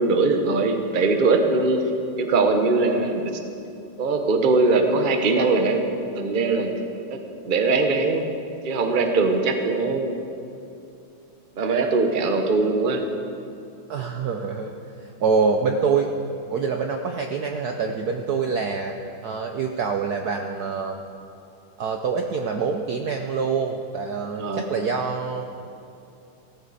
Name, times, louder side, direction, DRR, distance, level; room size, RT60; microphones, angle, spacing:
voice 1, 0.0-1.8 2.2-3.2 4.0-5.8 6.1-6.7 7.1-7.2 7.4-8.3 8.6-10.1 11.6-13.0 24.4-24.6, right 3 dB, 35° right, 5 dB, 0.8 m, -21 dB
voice 2, 13.9-14.7 15.0-16.1 16.5-19.0 19.2-21.0 21.8-25.4, right 5 dB, 65° right, 4 dB, 1.0 m, -25 dB
17.0 x 14.5 x 4.1 m, 2.7 s
omnidirectional pair, 2.3 m